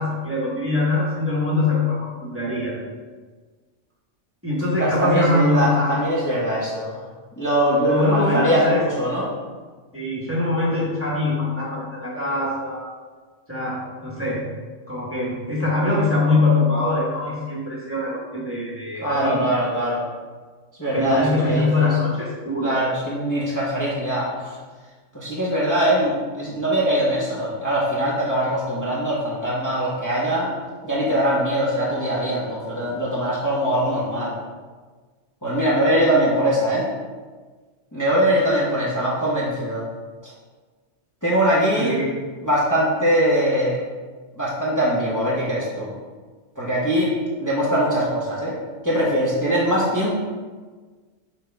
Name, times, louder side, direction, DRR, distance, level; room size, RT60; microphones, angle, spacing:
voice 1, 0.0-2.8 4.4-5.9 7.9-8.8 9.9-12.9 13.5-14.4 14.9-19.4 20.9-22.7 41.7-42.1, left 2 dB, 10° right, -6 dB, 1.3 m, -23 dB
voice 2, 4.8-7.0 7.4-9.3 19.0-20.0 20.8-22.0 22.6-24.6 25.1-30.5 30.8-34.3 35.4-36.9 37.9-39.8 40.2-40.3 41.2-42.0 42.4-43.8 44.4-45.9 46.5-47.1 47.4-48.6 48.8-50.2, equal, 15° left, -7 dB, 1.2 m, -22 dB
6.0 x 5.2 x 3.5 m, 1.4 s
omnidirectional pair, 1.2 m